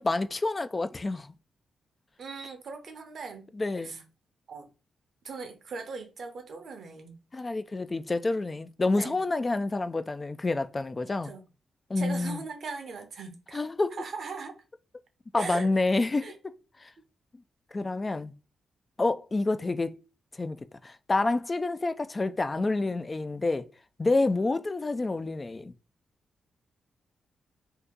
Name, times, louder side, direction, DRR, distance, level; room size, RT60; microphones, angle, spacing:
voice 1, 0.0-1.3 3.5-4.0 7.3-11.3 11.9-12.4 13.5-14.0 15.3-16.3 16.8-16.9 17.7-18.3 19.0-20.0 20.4-23.7 24.0-25.7, left 3 dB, 35° left, 0.3 m, -28 dB
voice 2, 2.2-3.5 3.8-4.0 4.5-4.7 5.2-7.2 9.0-9.2 11.2-11.4 12.0-13.7 14.0-14.6 15.4-15.7 16.2-16.4, right 4 dB, 65° right, 0.8 m, -39 dB
2.8 x 2.4 x 3.7 m
supercardioid pair, 50°, 0 cm